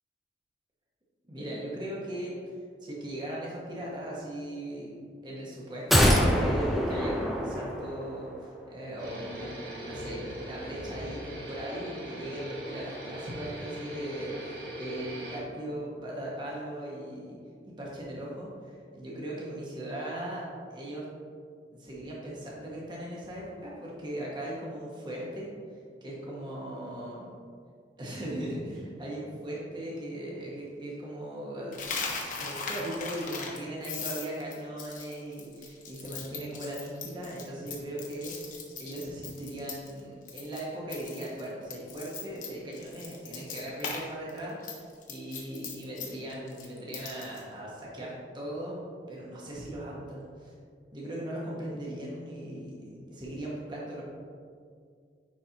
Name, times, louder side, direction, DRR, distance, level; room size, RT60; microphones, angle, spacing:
voice 1, 1.3-2.3 2.8-17.4 17.6-20.4 20.7-21.1 21.7-25.5 26.0-27.2 28.0-32.0 32.4-48.8 49.1-50.5 50.9-54.0, right 1 dB, 25° right, -5 dB, 1.2 m, -38 dB
sound 1, 5.9-8.3 8.6-8.7, equal, ahead, 0.5 m, -25 dB
sound 2, 9.0-15.4, right 1 dB, 65° right, 1.2 m, -40 dB
Coin (dropping), 31.7-40.0 40.3-40.6 40.9-44.0 44.3-47.4, left 5 dB, 45° left, 0.9 m, -39 dB
9.5 x 4.2 x 2.9 m, 2.2 s
head